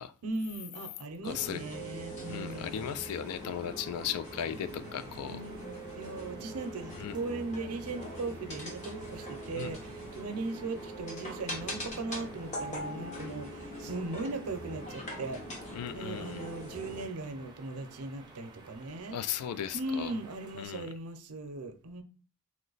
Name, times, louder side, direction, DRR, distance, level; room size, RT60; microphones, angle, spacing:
voice 1, 0.2-2.8 5.2-15.4 15.9-19.2 19.7-22.0, right 2 dB, 80° right, 0.5 m, -38 dB
voice 2, 1.2-1.6 2.3-5.4 7.0-7.2 9.5-9.7 15.7-16.5 19.1-20.1 20.6-20.9, left 9 dB, 80° left, 0.3 m, -36 dB
sound 1, 1.2-17.1, equal, 30° left, 0.8 m, -42 dB
sound 2, 2.2-20.7, right 2 dB, 20° right, 0.5 m, -54 dB
3.0 x 2.1 x 3.9 m
head